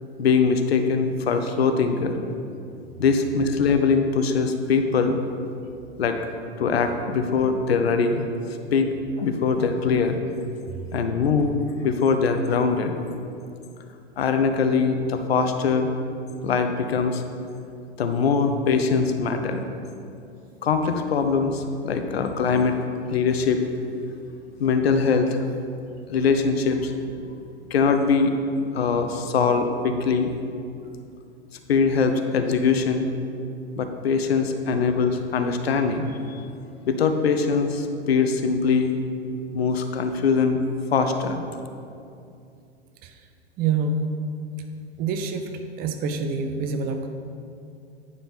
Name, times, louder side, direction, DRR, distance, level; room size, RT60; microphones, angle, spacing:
voice 1, 0.2-2.2 3.0-5.2 6.0-6.2 6.6-8.2 8.7-8.9 9.2-10.2 10.9-12.9 14.2-15.9 16.4-17.2 18.0-19.7 20.6-22.8 23.1-23.6 24.6-25.4 26.1-27.0 27.7-28.3 28.7-30.3 31.7-33.1 33.8-36.4 36.9-38.9 39.5-40.6 40.9-41.4, left 5 dB, 65° left, 7 dB, 0.8 m, -22 dB
voice 2, 43.6-44.0 45.0-45.5 45.8-47.1, right 4 dB, 30° right, 6 dB, 0.6 m, -26 dB
9.5 x 5.5 x 4.1 m, 2.5 s
figure-of-eight pair, 95°, 33 cm